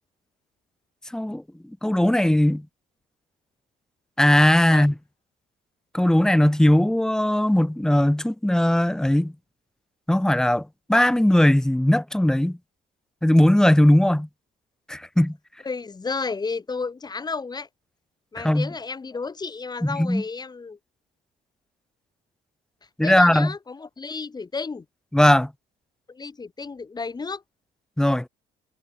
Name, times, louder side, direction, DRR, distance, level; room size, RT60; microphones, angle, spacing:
voice 1, 1.1-1.4 1.8-2.6 4.2-4.9 5.9-9.3 10.1-12.6 13.2-14.3 14.9-15.4 18.4-18.7 19.8-20.2 23.0-23.5 25.1-25.5 28.0-28.3, left 1 dB, 5° left, 0.9 m, -19 dB
voice 2, 15.6-17.7 18.3-20.8 23.0-24.9 26.1-27.4, left 4 dB, 25° left, 3.8 m, -32 dB
cardioid pair, 110°, 17 cm